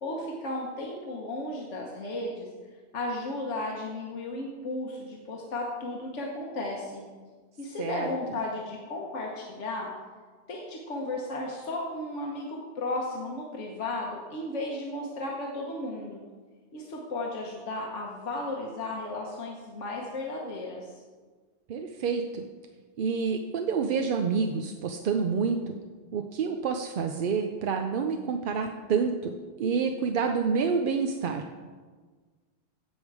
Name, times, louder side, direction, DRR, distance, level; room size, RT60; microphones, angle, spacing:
voice 1, 0.0-2.5 2.9-7.0 7.6-9.9 10.5-16.2 16.7-20.9, left 2 dB, 80° left, -1 dB, 1.4 m, -34 dB
voice 2, 7.8-8.1 21.7-22.4 23.0-25.8 26.1-31.4, right 5 dB, 55° right, 5 dB, 0.7 m, -28 dB
15.0 x 5.3 x 4.7 m, 1.5 s
omnidirectional pair, 1.2 m